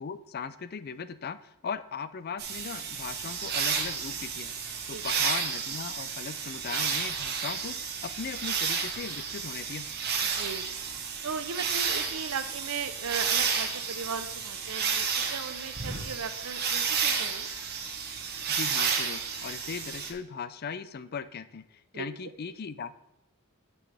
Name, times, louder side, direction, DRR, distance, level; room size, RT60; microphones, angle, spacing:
voice 1, 0.0-9.9 18.5-23.0, left 6 dB, 45° left, 14 dB, 0.4 m, -38 dB
sound 1, 2.4-20.1, right 6 dB, 50° right, 1.1 m, -31 dB
voice 2, 10.3-10.7 11.2-17.5 21.9-22.1, right 5 dB, 90° right, 11 dB, 0.6 m, -37 dB
9.5 x 6.0 x 3.4 m, 0.90 s
head